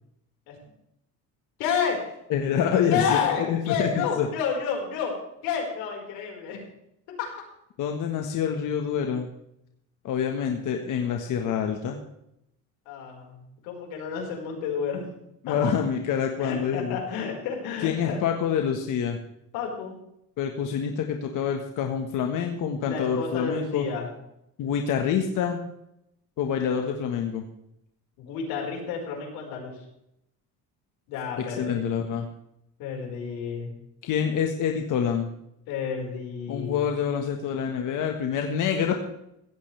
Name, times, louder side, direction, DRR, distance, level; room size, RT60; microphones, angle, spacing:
voice 1, 1.6-2.0 2.9-5.1 5.4-6.6 7.2-7.3 12.8-13.4 13.6-15.0 15.5-15.7 16.4-18.2 19.5-20.0 22.9-24.1 28.2-29.8 31.1-31.8 32.8-33.7 35.7-36.8, left 6 dB, 90° left, 0 dB, 5.0 m, -30 dB
voice 2, 2.3-4.3 7.8-9.3 10.0-12.0 15.4-17.0 17.8-19.2 20.4-23.9 24.6-25.6 26.4-27.5 31.4-32.3 34.0-35.3 36.5-38.9, left 7 dB, 60° left, 3 dB, 1.6 m, -26 dB
16.5 x 14.5 x 3.4 m, 0.79 s
cardioid pair, 120°, 36 cm